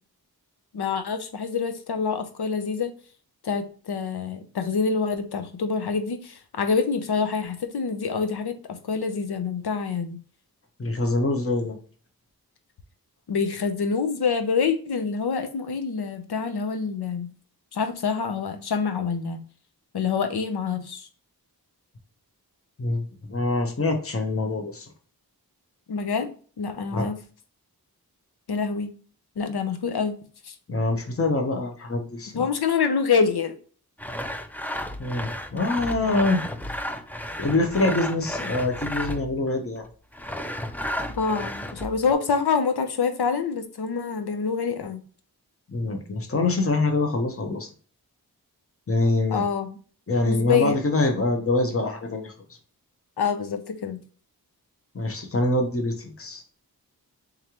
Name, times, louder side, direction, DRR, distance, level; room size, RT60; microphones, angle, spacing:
voice 1, 0.7-2.9 3.4-10.2 13.3-17.3 17.7-19.4 19.9-21.1 25.9-26.3 26.6-27.2 28.5-28.9 29.4-30.1 30.4-30.5 32.3-33.6 41.2-45.0 49.3-49.8 50.2-50.8 53.2-54.0, left 5 dB, 90° left, 8 dB, 0.7 m, -26 dB
voice 2, 10.8-11.8 22.8-24.9 26.9-27.1 30.7-32.5 35.0-36.4 37.4-39.8 45.7-47.7 48.9-49.4 50.1-52.3 54.9-56.4, left 2 dB, 35° left, 3 dB, 0.9 m, -25 dB
Sawing, 34.0-39.4 40.1-42.1, left 1 dB, 5° left, 0.4 m, -33 dB
3.6 x 3.2 x 2.9 m, 0.41 s
wide cardioid pair, 60°, 38 cm